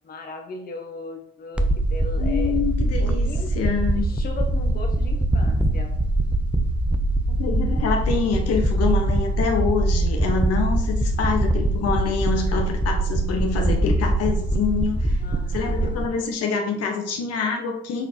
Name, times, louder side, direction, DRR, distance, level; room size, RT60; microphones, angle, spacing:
voice 1, 0.0-2.6 3.0-3.5 3.9-5.9 15.2-16.2, left 2 dB, 30° left, 3 dB, 1.0 m, -37 dB
sound 1, 1.6-16.1, right 1 dB, 5° right, 0.7 m, -23 dB
voice 2, 2.2-4.1 7.3-15.2 15.5-18.1, left 5 dB, 55° left, 3 dB, 1.3 m, -26 dB
8.2 x 4.4 x 2.9 m, 0.74 s
hypercardioid pair, 50°, 29 cm